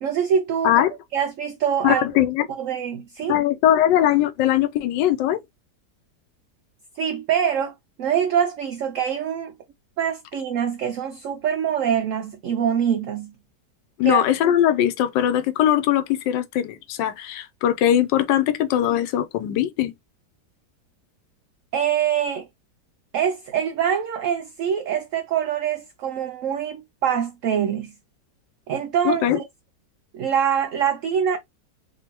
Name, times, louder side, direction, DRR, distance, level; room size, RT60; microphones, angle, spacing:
voice 1, 0.0-0.7 1.1-2.1 2.5-3.4 7.0-9.5 10.0-13.3 14.0-14.2 21.7-22.5 23.1-27.9 28.7-29.5 30.1-31.4, right 8 dB, 75° right, 0.7 m, -24 dB
voice 2, 1.8-2.5 3.3-5.4 14.0-19.9 29.0-29.4, left 11 dB, 85° left, 1.3 m, -20 dB
3.7 x 2.7 x 2.8 m
omnidirectional pair, 1.9 m